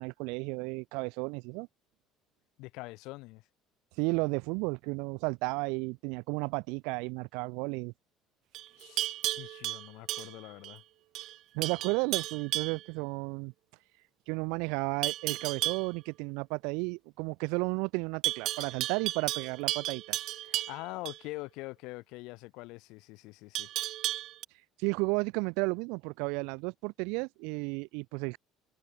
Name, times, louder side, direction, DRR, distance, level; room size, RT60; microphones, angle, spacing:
voice 1, 0.0-1.7 4.0-7.9 11.5-13.5 14.3-20.2 24.8-28.4, right 31 dB, 90° right, 0.5 m, -33 dB
voice 2, 2.6-3.4 8.8-10.8 20.4-23.7, left 23 dB, 75° left, 4.7 m, -44 dB
Livestock farm animals working animals, 8.5-10.8 11.1-11.4 11.6-12.9 15.0-15.9 18.2-21.2 23.5-24.4, right 15 dB, 55° right, 1.2 m, -34 dB
cardioid pair, 155°, 0 cm